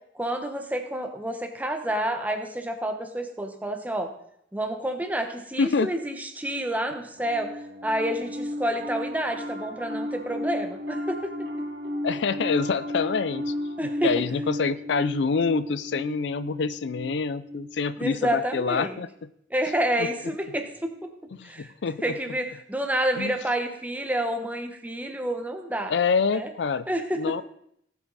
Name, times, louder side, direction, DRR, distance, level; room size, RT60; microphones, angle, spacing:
voice 1, 0.1-4.1 4.5-11.3 13.8-14.1 18.0-19.0 19.5-21.1 21.4-21.7 22.0-25.9 26.3-26.5 26.9-27.2, right 1 dB, 10° right, 5 dB, 1.2 m, -29 dB
voice 2, 5.6-5.9 12.0-13.5 13.8-19.1 20.0-20.1 21.3-22.2 23.2-23.4 25.9-26.9 27.2-27.4, left 5 dB, 65° left, 15 dB, 0.4 m, -26 dB
Piano, 7.2-18.7, left 1 dB, 60° right, 2.5 m, -34 dB
19.0 x 8.0 x 4.1 m, 0.73 s
head